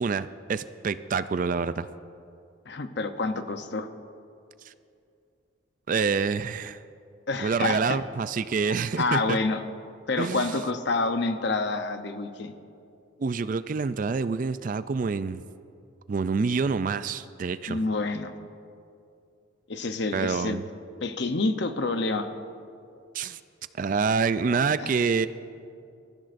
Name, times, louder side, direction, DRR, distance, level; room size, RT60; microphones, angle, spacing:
voice 1, 0.0-1.9 5.9-6.8 7.4-9.4 10.2-10.5 13.2-15.4 16.1-17.8 20.1-20.6 23.1-23.4 23.8-25.3, right 5 dB, 40° right, 13 dB, 0.3 m, -27 dB
voice 2, 2.7-3.9 7.3-8.0 9.0-9.6 10.1-12.5 17.7-18.3 19.7-20.6 21.0-22.3 24.8-25.0, left 3 dB, 55° left, 8 dB, 0.7 m, -28 dB
22.5 x 14.5 x 2.6 m, 2.5 s
head